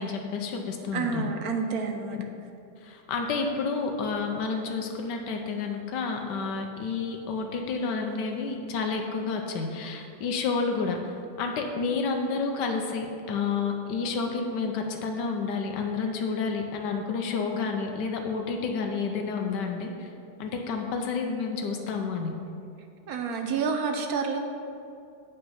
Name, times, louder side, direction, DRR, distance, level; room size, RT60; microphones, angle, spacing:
voice 1, 0.0-1.2 2.8-11.1 11.4-20.1 20.4-22.3, left 4 dB, 85° left, 3 dB, 1.3 m, -30 dB
voice 2, 0.9-2.2 23.1-24.4, right 5 dB, 65° right, 5 dB, 1.0 m, -29 dB
8.4 x 5.5 x 5.5 m, 2.6 s
omnidirectional pair, 1.8 m